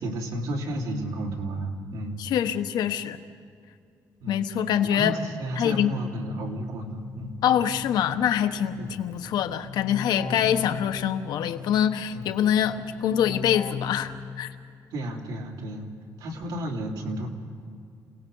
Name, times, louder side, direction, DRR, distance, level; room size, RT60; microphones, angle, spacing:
voice 1, 0.0-2.2 4.2-4.4 4.8-7.3 8.8-8.9 10.2-10.4 12.1-12.3 14.9-15.9 16.2-17.3, right 1 dB, 80° right, 3.3 m, -32 dB
voice 2, 2.2-3.2 4.3-5.2 5.6-5.9 7.4-14.5, left 9 dB, 85° left, 1.1 m, -25 dB
Keyboard (musical), 6.5-14.8, left 7 dB, 55° left, 1.3 m, -39 dB
28.5 x 18.0 x 5.5 m
cardioid pair, 175°, 7 cm